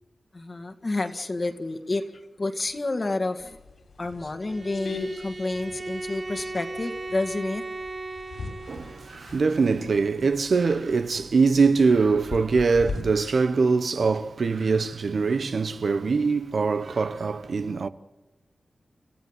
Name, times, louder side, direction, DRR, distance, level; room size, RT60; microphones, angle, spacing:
voice 1, 0.3-3.6 4.0-7.6 10.7-10.8 17.6-17.9, left 2 dB, 45° left, 1.9 m, -30 dB
sound 1, 3.4-13.0, left 3 dB, 85° left, 5.6 m, -41 dB
Bowed string instrument, 4.4-9.2, right 2 dB, 40° right, 1.0 m, -37 dB
voice 2, 8.7-17.9, right 4 dB, 70° right, 0.9 m, -23 dB
29.0 x 15.0 x 8.1 m
cardioid pair, 60°, 0 cm